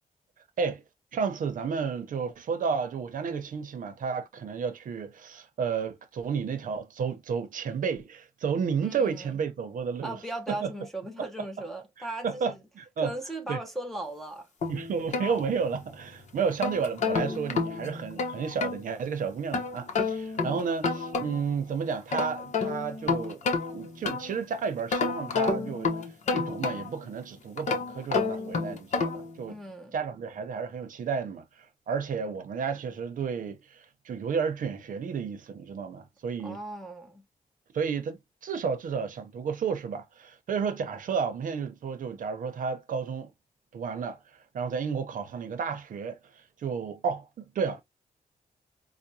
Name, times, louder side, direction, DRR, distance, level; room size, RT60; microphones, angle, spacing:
voice 1, 1.1-10.2 10.5-10.7 12.0-13.1 13.5-13.6 14.7-23.4 23.7-26.0 26.3-29.6 29.9-36.6 37.7-43.3 43.7-46.2 46.6-47.8, right 6 dB, 70° right, 0.8 m, -32 dB
voice 2, 8.8-9.4 10.0-12.6 13.0-14.5 29.5-29.9 36.4-37.2, right 2 dB, ahead, 0.8 m, -37 dB
sound 1, 14.6-16.0 16.4-18.8 19.5-21.6 21.9-24.4 24.9-27.1 27.6-29.3, left 4 dB, 55° left, 0.9 m, -30 dB
4.7 x 2.2 x 2.7 m
wide cardioid pair, 170°, 14 cm